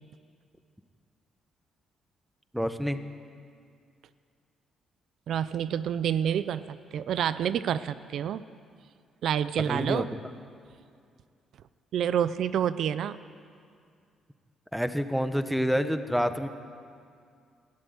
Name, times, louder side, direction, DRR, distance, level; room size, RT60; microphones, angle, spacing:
voice 1, 2.5-3.0 9.7-10.1 14.7-16.5, equal, ahead, 9 dB, 1.2 m, -27 dB
voice 2, 5.3-8.4 9.2-10.0 11.9-13.2, right 9 dB, 70° right, 14 dB, 0.5 m, -28 dB
20.5 x 13.5 x 9.6 m, 2.3 s
cardioid pair, 90°, 0 cm